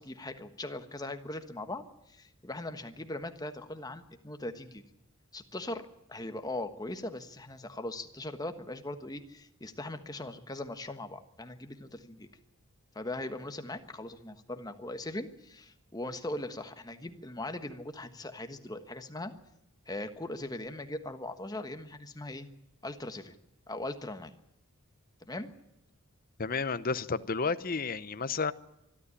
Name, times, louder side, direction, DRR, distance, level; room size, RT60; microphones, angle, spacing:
voice 1, 0.0-4.8 5.3-5.8 6.1-12.3 12.9-19.3 19.9-22.5 22.8-23.3 23.7-24.3 25.2-25.5, left 1 dB, 15° left, 1.3 m, -40 dB
voice 2, 26.4-28.5, left 4 dB, 40° left, 0.8 m, -31 dB
24.5 x 12.5 x 9.9 m
head